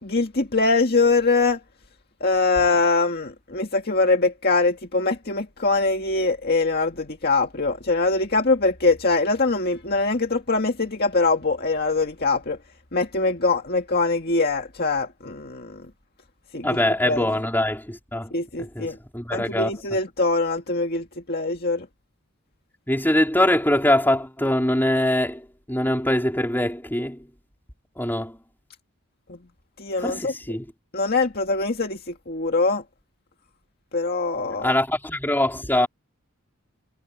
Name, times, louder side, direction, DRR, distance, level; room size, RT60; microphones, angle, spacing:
voice 1, 0.0-1.6 2.2-12.6 12.9-15.9 16.5-16.8 17.0-17.3 18.3-19.0 19.3-21.9 29.3-29.4 29.8-30.3 30.9-32.8 33.9-34.7, left 3 dB, 45° left, 2.1 m, -23 dB
voice 2, 16.6-18.3 18.6-19.7 22.9-27.3 28.0-28.4 30.0-30.7 34.6-35.9, left 1 dB, 10° left, 4.5 m, -23 dB
head